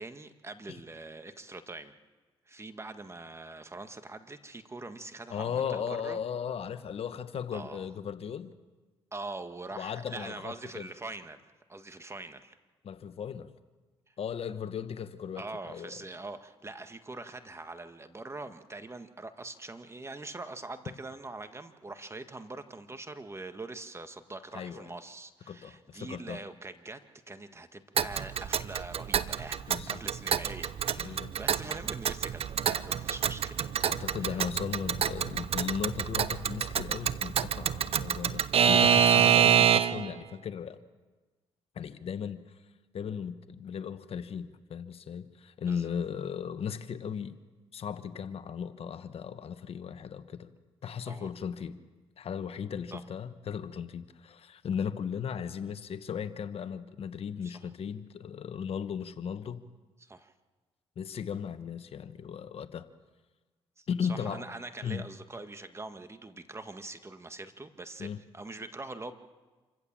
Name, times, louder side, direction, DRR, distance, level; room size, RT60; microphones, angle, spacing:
voice 1, 0.0-1.9 2.5-6.2 7.5-7.9 9.1-11.4 11.7-12.5 14.1-14.2 15.4-27.0 27.3-29.6 29.9-34.4 45.7-45.9 51.1-51.3 52.9-53.0 57.4-57.5 60.0-60.3 63.8-63.9 64.3-68.1 68.3-69.1, right 2 dB, 25° right, 9 dB, 1.7 m, -43 dB
voice 2, 5.3-8.5 9.7-10.9 12.8-13.5 14.2-16.0 24.5-24.9 25.5-26.4 29.7-30.0 31.0-31.3 33.8-40.8 41.7-42.6 42.9-47.4 47.7-50.5 50.8-51.8 52.2-59.6 61.0-62.9 63.9-64.5 64.8-65.1 68.0-68.2, left 7 dB, 60° left, 11 dB, 1.2 m, -36 dB
Alarm / Clock, 28.0-40.1, right 8 dB, 60° right, 0.8 m, -27 dB
27.5 x 15.5 x 7.5 m, 1.3 s
supercardioid pair, 65°, 11 cm